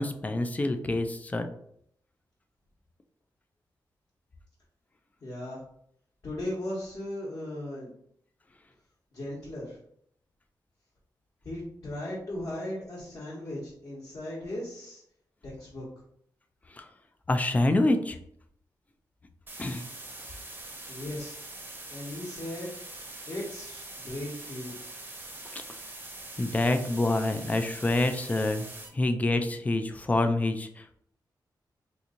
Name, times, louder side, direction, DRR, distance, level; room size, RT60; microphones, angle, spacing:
voice 1, 0.0-1.5 16.7-16.8 17.3-18.2 19.6-19.8 25.5-25.6 26.4-28.7 28.9-31.0, left 2 dB, 20° left, 7 dB, 0.3 m, -27 dB
voice 2, 5.2-5.6 6.2-7.9 9.1-9.8 11.4-15.0 15.4-15.8 20.9-21.4 21.9-22.7 23.3-24.7, left 1 dB, 50° left, -8 dB, 1.2 m, -37 dB
sound 1, 19.5-28.9, right 2 dB, 25° right, 0.7 m, -43 dB
2.9 x 2.6 x 3.7 m, 0.69 s
wide cardioid pair, 130°, 8 cm